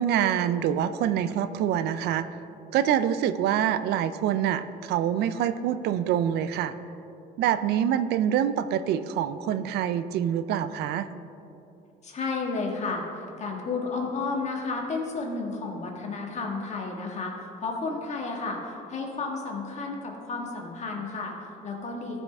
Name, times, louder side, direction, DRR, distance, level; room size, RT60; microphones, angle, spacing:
voice 1, 0.0-2.3 2.7-6.7 7.4-11.1, right 10 dB, 75° right, 13 dB, 0.4 m, -25 dB
voice 2, 12.0-22.2, left 3 dB, 40° left, 0 dB, 1.7 m, -32 dB
14.5 x 5.7 x 3.5 m, 2.8 s
cardioid pair, 110°, 17 cm